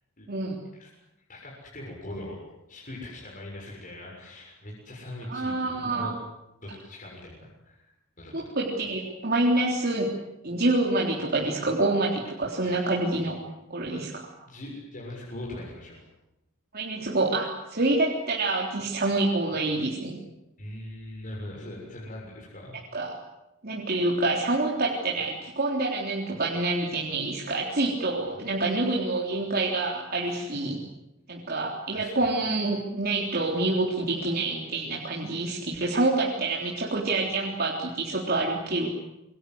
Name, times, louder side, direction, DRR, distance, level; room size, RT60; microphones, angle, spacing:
voice 1, 0.3-0.6 5.3-6.1 8.3-10.1 10.4-13.4 13.7-14.1 16.7-20.2 22.9-23.1 23.6-30.8 31.3-38.9, right 2 dB, 45° right, -2 dB, 3.7 m, -27 dB
voice 2, 1.3-2.4 2.7-6.1 6.6-8.5 12.6-12.8 13.8-14.1 14.5-16.0 19.5-19.6 20.6-22.8 30.2-30.5 31.9-32.3 38.2-38.3, left 1 dB, 40° left, -3 dB, 7.0 m, -41 dB
27.0 x 23.5 x 8.0 m, 0.90 s
head